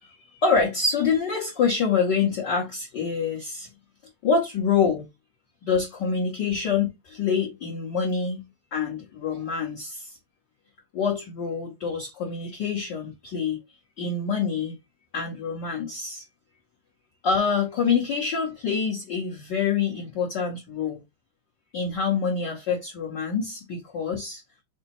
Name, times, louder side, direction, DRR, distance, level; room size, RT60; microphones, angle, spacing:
voice 1, 0.0-3.7 4.2-5.1 5.7-8.4 8.7-10.2 10.9-13.6 14.0-14.8 15.1-16.2 17.2-21.0 21.7-24.4, left 5 dB, 55° left, 1.2 m, -26 dB
5.5 x 2.2 x 4.2 m
omnidirectional pair, 3.5 m